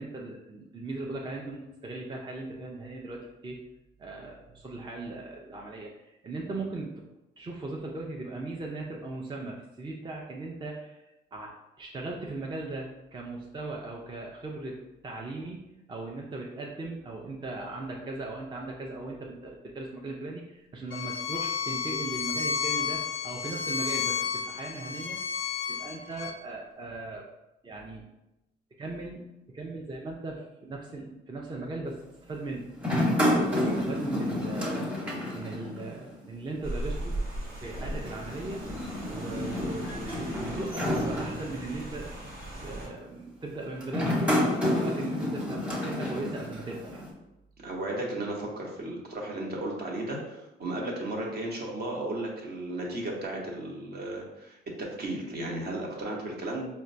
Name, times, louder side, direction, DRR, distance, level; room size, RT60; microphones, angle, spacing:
voice 1, 0.0-3.6 4.0-6.9 7.4-11.0 11.3-14.8 15.0-25.2 25.7-27.3 27.6-28.1 28.8-29.2 29.5-32.7 33.2-34.9 35.3-37.2 37.6-38.6 39.0-42.1 42.6-44.4 44.6-47.0, right 2 dB, 25° right, -1 dB, 0.5 m, -38 dB
Bowed string instrument, 20.9-26.3, left 7 dB, 85° left, 0.4 m, -32 dB
sound 1, 32.8-36.2 36.4-36.5 37.7-41.9 42.6-42.9 43.8-47.1, left 1 dB, 5° right, 0.9 m, -30 dB
Rain, 36.6-42.9, right 1 dB, 80° right, 1.1 m, -38 dB
voice 2, 47.6-56.6, right 1 dB, 55° right, -1 dB, 0.9 m, -34 dB
4.4 x 2.1 x 2.6 m, 0.94 s
cardioid pair, 90°, 20 cm